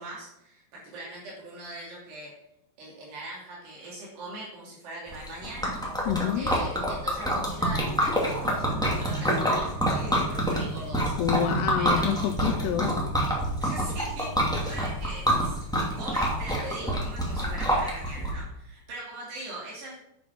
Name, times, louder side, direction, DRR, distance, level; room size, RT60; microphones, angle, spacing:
voice 1, 0.0-2.3 2.8-5.7 6.4-11.2 11.8-12.2 13.6-19.9, right 1 dB, 70° right, -4 dB, 4.8 m, -41 dB
Liquid, 5.1-18.3, equal, ahead, 0.8 m, -27 dB
voice 2, 6.1-6.5 11.2-13.1, left 10 dB, 80° left, 8 dB, 2.5 m, -28 dB
sound 1, 7.7-14.8, right 1 dB, 90° right, 3.4 m, -40 dB
9.6 x 7.3 x 5.9 m, 0.78 s
omnidirectional pair, 5.1 m